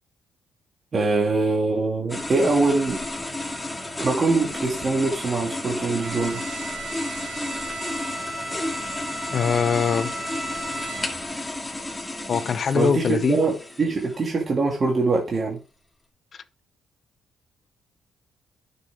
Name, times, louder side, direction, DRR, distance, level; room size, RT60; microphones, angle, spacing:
voice 1, 0.9-3.0 4.0-6.4 12.7-15.6, right 3 dB, 40° right, 2.2 m, -23 dB
sound 1, 2.1-14.4, left 1 dB, 10° left, 2.4 m, -32 dB
Bowed string instrument, 6.0-11.4, right 2 dB, 75° right, 4.0 m, -35 dB
voice 2, 9.3-10.1 12.3-13.4, left 6 dB, 50° left, 0.8 m, -22 dB
9.6 x 6.8 x 3.5 m
cardioid pair, 90°, 0 cm